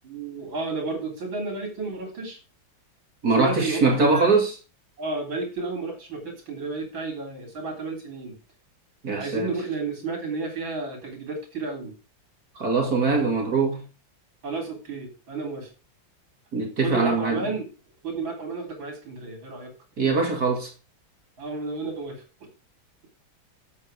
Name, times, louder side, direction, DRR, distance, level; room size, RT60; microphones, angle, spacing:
voice 1, 0.0-2.4 3.4-3.8 4.1-4.3 5.0-8.3 9.2-11.9 14.4-15.7 16.8-17.7 18.0-19.7 21.4-22.2, right 3 dB, 75° right, 4.2 m, -32 dB
voice 2, 3.2-4.5 9.0-9.5 12.6-13.8 16.5-17.4 20.0-20.7, right 3 dB, 50° right, 2.9 m, -22 dB
8.3 x 8.1 x 4.9 m
omnidirectional pair, 2.1 m